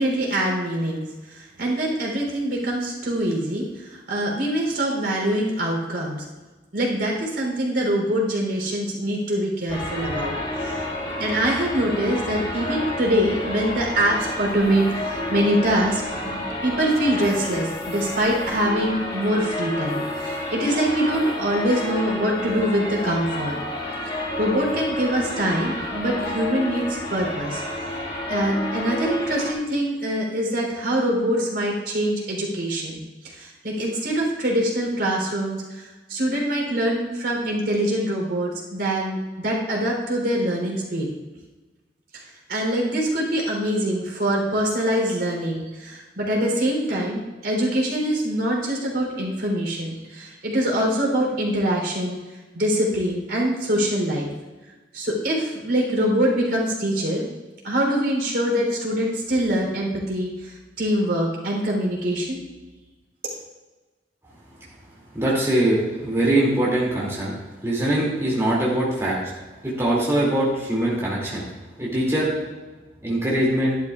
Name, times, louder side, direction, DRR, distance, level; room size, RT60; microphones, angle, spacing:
voice 1, 0.0-6.2 6.7-10.9 11.2-23.6 24.4-27.9 28.3-41.1 42.1-52.2 52.5-54.3 54.9-57.3 57.6-62.4, right 1 dB, 70° right, -2 dB, 3.5 m, -24 dB
sound 1, 9.7-29.5, left 1 dB, 30° left, 2.0 m, -30 dB
voice 2, 65.1-67.3 67.6-69.2 69.6-71.4 71.8-72.3 73.0-73.8, right 1 dB, 15° right, -6 dB, 2.5 m, -22 dB
13.5 x 11.5 x 2.4 m, 1.2 s
head